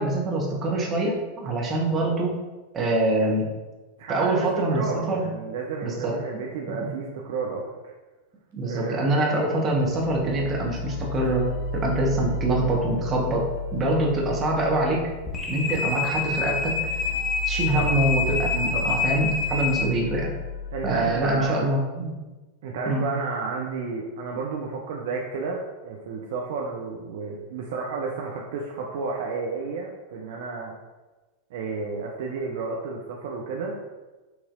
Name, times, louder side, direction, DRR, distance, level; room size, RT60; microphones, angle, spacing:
voice 1, 0.0-2.4 2.7-3.5 4.1-5.3 5.8-6.1 6.7-6.9 8.5-11.5 11.7-15.1 15.5-16.8 17.5-20.3 20.8-22.1 22.9-23.1, right 2 dB, 25° right, -2 dB, 1.1 m, -25 dB
voice 2, 4.0-7.9 8.6-9.1 17.8-18.1 18.7-19.0 20.7-21.7 22.6-30.7 31.5-33.7, right 4 dB, 55° right, -1 dB, 0.5 m, -31 dB
sound 1, 9.8-21.5, left 2 dB, 55° left, 0.5 m, -33 dB
sound 2, 15.2-19.8, left 5 dB, 20° left, 0.7 m, -27 dB
6.3 x 3.1 x 2.5 m, 1.2 s
figure-of-eight pair, 90°, 0 cm